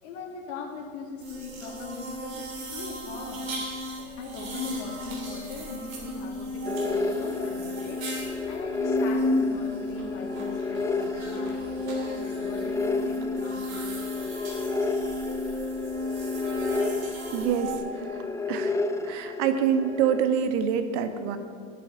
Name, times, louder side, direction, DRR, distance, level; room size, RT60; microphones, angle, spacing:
voice 1, 0.0-3.5 4.2-8.1 8.5-14.4, left 4 dB, 70° left, 2 dB, 2.2 m, -40 dB
sound 1, 1.2-17.8, left 1 dB, 85° right, 3.2 m, -33 dB
sound 2, 6.7-20.2, left 3 dB, 5° left, 0.5 m, -32 dB
voice 2, 17.3-17.7 18.5-18.7 19.1-21.4, right 8 dB, 60° right, 9 dB, 1.3 m, -25 dB
9.5 x 7.6 x 9.1 m, 2.1 s
hypercardioid pair, 95°, 39 cm